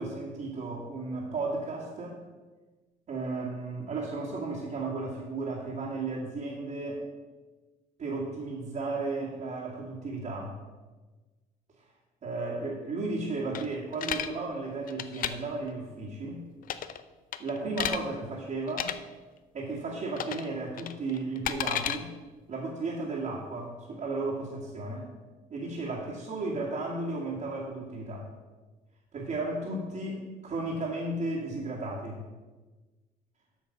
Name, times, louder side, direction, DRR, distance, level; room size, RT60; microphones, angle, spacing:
voice 1, 0.0-2.2 3.1-7.0 8.0-10.6 12.2-16.4 17.4-18.9 19.5-22.1 22.5-25.1 25.5-28.3 29.1-32.3, right 3 dB, 45° right, -6 dB, 2.1 m, -34 dB
sound 1, 13.5-14.3 14.9-15.3 16.6-17.0 17.3-18.0 18.7-18.9 20.2-20.5 20.8-22.0, left 10 dB, 55° left, 0.6 m, -32 dB
8.6 x 6.1 x 6.1 m, 1.3 s
cardioid pair, 110°, 17 cm